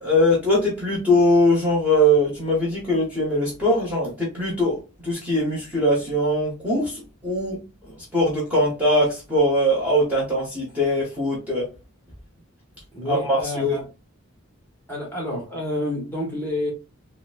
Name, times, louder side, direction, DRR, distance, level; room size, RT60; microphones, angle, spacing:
voice 1, 0.0-4.8 5.0-7.6 7.9-11.7 13.0-13.7, equal, 5° right, 1.0 m, -21 dB
voice 2, 12.9-13.8 14.9-16.7, left 1 dB, 10° left, 1.1 m, -29 dB
3.9 x 2.1 x 2.4 m
head